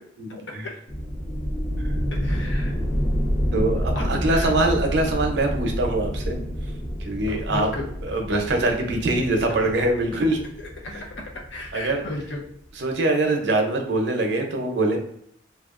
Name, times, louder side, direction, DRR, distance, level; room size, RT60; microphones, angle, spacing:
voice 1, 0.2-0.7 1.8-1.9 3.5-6.4 7.0-7.7 8.0-10.4 10.9-11.0 11.7-12.0 12.8-15.0, right 2 dB, 75° right, 3 dB, 0.6 m, -23 dB
sound 1, 0.9-12.3, equal, 25° left, 0.5 m, -28 dB
voice 2, 2.1-2.7 3.9-4.5 7.3-7.9 10.9-11.0 11.5-12.4, left 2 dB, 85° left, -1 dB, 0.7 m, -33 dB
2.8 x 2.3 x 2.4 m, 0.71 s
head